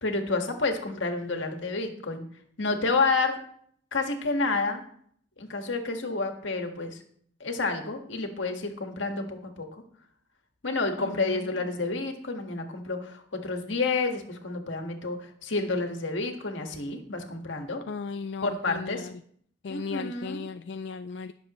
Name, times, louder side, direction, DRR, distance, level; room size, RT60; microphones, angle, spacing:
voice 1, 0.0-2.2 2.6-3.4 3.9-4.8 5.4-6.9 7.4-9.7 10.6-17.8 18.4-19.1 19.7-20.4, left 3 dB, 90° left, 4 dB, 1.7 m, -29 dB
voice 2, 11.0-11.5 17.9-19.1 19.6-21.3, left 5 dB, 70° left, 10 dB, 0.4 m, -36 dB
20.5 x 6.9 x 3.1 m, 0.63 s
head